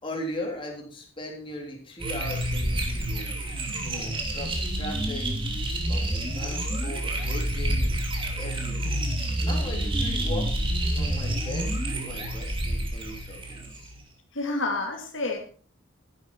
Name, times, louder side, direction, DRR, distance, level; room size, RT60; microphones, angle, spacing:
voice 1, 0.0-3.5 3.8-5.3 5.9-8.0 8.4-10.5 10.9-13.9, left 1 dB, 25° left, 0 dB, 3.5 m, -38 dB
sound 1, 2.0-14.0, right 1 dB, 25° right, 2.9 m, -28 dB
voice 2, 14.3-15.4, left 2 dB, 65° left, 2 dB, 2.5 m, -29 dB
14.0 x 11.5 x 4.5 m, 0.42 s
head